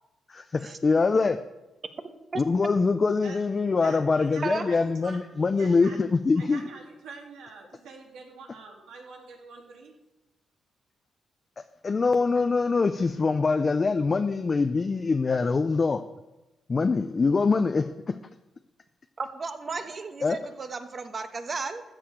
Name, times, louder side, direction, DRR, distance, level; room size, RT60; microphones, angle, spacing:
voice 1, 0.3-1.4 2.4-6.6 11.6-16.0 16.7-18.2 20.2-20.4, left 4 dB, 35° left, 8 dB, 0.5 m, -24 dB
voice 2, 3.8-5.2 5.6-6.0 6.4-9.9, right 4 dB, 90° right, 1 dB, 2.6 m, -45 dB
voice 3, 19.2-21.8, right 4 dB, 40° right, 8 dB, 1.1 m, -34 dB
13.5 x 4.9 x 8.5 m, 1.0 s
cardioid pair, 100°, 0 cm